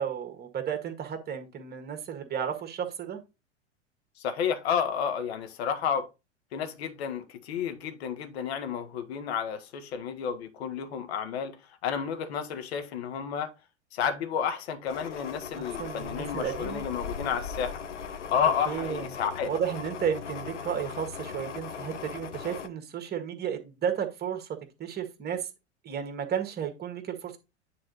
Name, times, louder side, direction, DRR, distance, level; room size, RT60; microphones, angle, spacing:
voice 1, 0.0-3.2 15.6-16.8 18.7-19.1 19.4-24.5 24.8-25.5 25.8-27.4, right 8 dB, 25° right, 1.7 m, -33 dB
voice 2, 4.2-6.1 6.5-11.6 11.8-13.5 13.9-17.8 18.3-19.5, left 7 dB, 60° left, 1.6 m, -31 dB
sound 1, 14.9-22.7, left 6 dB, 75° left, 1.0 m, -38 dB
9.8 x 4.0 x 4.1 m
figure-of-eight pair, 90°, 35 cm